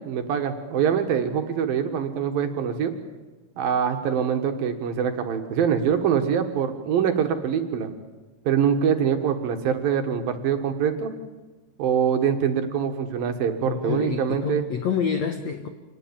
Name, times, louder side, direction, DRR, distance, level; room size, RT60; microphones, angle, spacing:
voice 1, 0.0-2.9 3.6-7.9 8.5-11.1 11.8-14.7, right 7 dB, 60° right, 6 dB, 2.9 m, -24 dB
voice 2, 13.7-15.7, left 6 dB, 85° left, 7 dB, 1.5 m, -27 dB
26.5 x 19.5 x 8.8 m, 1.2 s
omnidirectional pair, 5.1 m